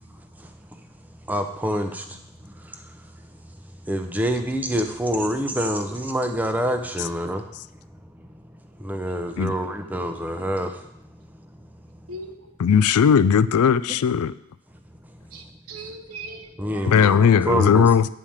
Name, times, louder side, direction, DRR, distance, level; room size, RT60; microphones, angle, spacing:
voice 1, 0.4-0.8 1.3-2.2 2.5-2.9 3.9-7.5 8.3-8.4 8.8-10.9 16.6-17.9, equal, 5° right, 6 dB, 0.6 m, -26 dB
voice 2, 12.1-12.4 15.3-17.4, right 2 dB, 85° right, 5 dB, 0.9 m, -40 dB
voice 3, 12.6-14.3 16.9-18.1, left 7 dB, 85° left, 16 dB, 0.4 m, -17 dB
9.0 x 4.9 x 7.2 m, 0.80 s
head